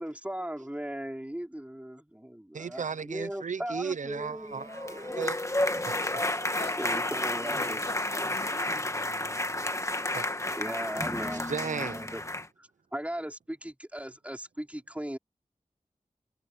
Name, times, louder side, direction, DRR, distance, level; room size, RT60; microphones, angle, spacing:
voice 1, 0.0-4.9 6.8-7.8 10.5-12.2 12.6-15.2, right 1 dB, 10° right, 4.0 m, -38 dB
voice 2, 2.5-5.4 5.8-6.3 10.1-10.3 11.3-12.1, right 6 dB, 80° right, 0.5 m, -36 dB
sound 1, 4.6-12.5, left 1 dB, 25° left, 1.5 m, -31 dB
voice 3, 6.5-7.1 7.4-8.9, left 3 dB, 55° left, 1.1 m, -44 dB
wide cardioid pair, 65°, 13 cm